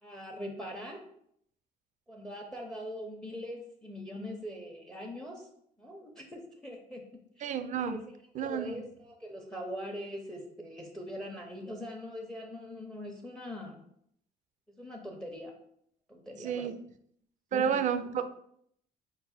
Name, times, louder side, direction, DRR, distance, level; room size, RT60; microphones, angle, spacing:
voice 1, 0.0-1.0 2.1-5.5 5.8-7.0 7.4-7.5 7.9-8.0 8.4-13.8 14.8-15.5 16.1-16.7 17.5-17.8, equal, 5° left, 3 dB, 0.6 m, -42 dB
voice 2, 7.4-8.0 8.3-8.8 16.4-16.8 17.5-18.4, right 7 dB, 45° right, 10 dB, 0.4 m, -31 dB
4.5 x 2.1 x 4.1 m, 0.69 s
cardioid pair, 110°, 17 cm